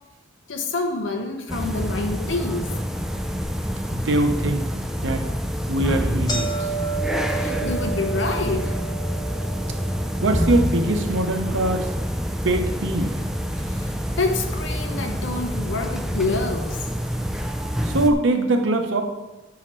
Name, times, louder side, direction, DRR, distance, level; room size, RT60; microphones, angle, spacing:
voice 1, 0.5-2.7 7.3-8.7 13.7-13.9 14.2-16.8, left 3 dB, 75° left, 4 dB, 0.8 m, -27 dB
sound 1, 1.5-18.1, equal, ahead, 0.3 m, -27 dB
sound 2, 3.4-3.5 4.1-4.2 5.0-5.2 5.5-5.6 5.9-14.1 14.4-15.1 15.9-16.0 17.0-17.1 17.3-17.4 18.0-18.1, right 5 dB, 20° left, 0.7 m, -34 dB
voice 2, 3.9-4.7 5.0-5.3 5.7-6.7 10.2-11.9 12.4-13.1 17.8-19.0, right 2 dB, 75° right, 5 dB, 0.7 m, -22 dB
5.9 x 5.5 x 3.1 m, 1.0 s
head